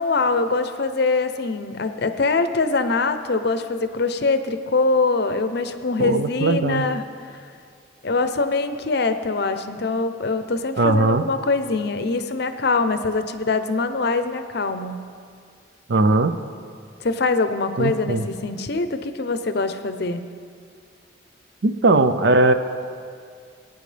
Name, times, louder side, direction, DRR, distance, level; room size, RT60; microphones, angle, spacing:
voice 1, 0.0-7.1 8.0-15.0 17.0-20.2, left 3 dB, 55° left, 10 dB, 0.6 m, -23 dB
voice 2, 6.0-6.9 10.8-11.2 15.9-16.3 17.8-18.2 21.6-22.5, right 2 dB, 60° right, 9 dB, 0.5 m, -19 dB
21.0 x 9.2 x 3.3 m, 2.2 s
head